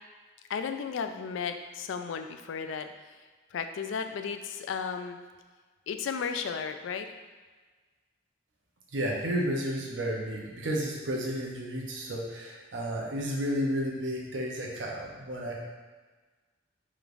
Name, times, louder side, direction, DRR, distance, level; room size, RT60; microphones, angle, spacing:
voice 1, 0.5-2.9 3.5-5.2 5.9-7.1, left 6 dB, 80° left, 7 dB, 0.3 m, -34 dB
voice 2, 8.9-15.5, equal, 75° right, -2 dB, 0.8 m, -32 dB
4.9 x 3.2 x 2.6 m, 1.4 s
head